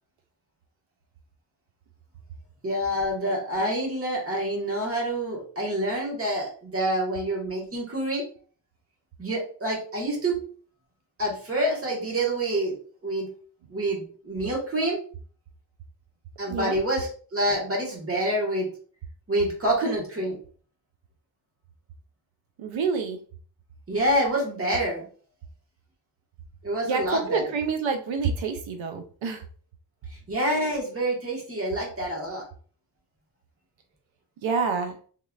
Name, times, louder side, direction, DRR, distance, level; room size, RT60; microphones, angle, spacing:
voice 1, 2.6-8.2 9.2-10.3 11.2-12.7 13.0-13.3 13.7-15.0 16.4-18.7 19.3-20.4 23.9-25.0 26.6-27.4 30.3-32.4, right 1 dB, 30° right, -3 dB, 1.4 m, -27 dB
voice 2, 22.6-23.2 26.9-29.4 34.4-34.9, right 5 dB, 90° right, 6 dB, 0.6 m, -27 dB
3.7 x 3.1 x 2.4 m, 0.43 s
wide cardioid pair, 145°, 45 cm